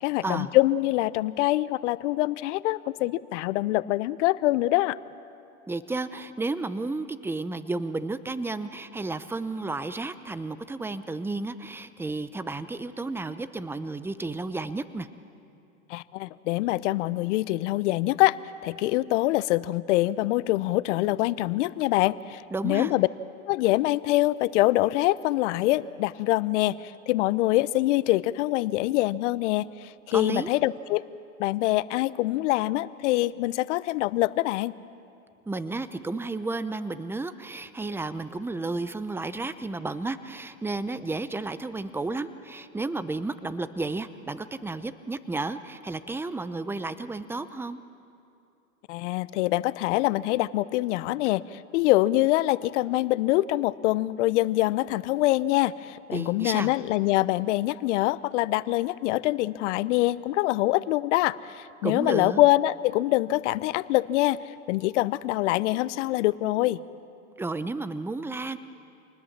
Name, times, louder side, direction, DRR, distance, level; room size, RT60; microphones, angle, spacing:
voice 1, 0.0-5.0 15.9-18.4 18.6-23.1 23.5-31.0 31.4-34.7 48.9-64.4 64.7-66.8, left 17 dB, 60° left, 18 dB, 0.8 m, -24 dB
voice 2, 5.7-15.1 22.5-22.9 30.1-30.5 35.5-47.8 56.1-56.7 61.8-62.4 67.4-68.6, right 3 dB, 5° right, 13 dB, 0.8 m, -32 dB
28.0 x 20.0 x 7.4 m, 2.7 s
hypercardioid pair, 110°, 41 cm